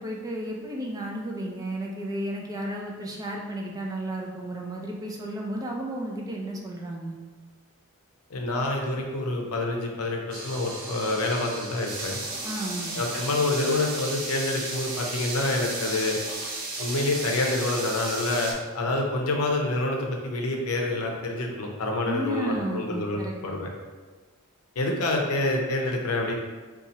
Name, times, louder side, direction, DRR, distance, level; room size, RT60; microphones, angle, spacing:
voice 1, 0.0-7.2 12.4-13.0 22.0-23.6, right 1 dB, 15° right, -1 dB, 0.4 m, -33 dB
voice 2, 8.3-12.2 13.0-16.2 16.8-23.7 24.8-26.4, left 2 dB, 85° left, 1 dB, 0.6 m, -27 dB
sound 1, 10.3-18.5, right 2 dB, 70° right, 0.6 m, -34 dB
2.7 x 2.4 x 4.0 m, 1.3 s
head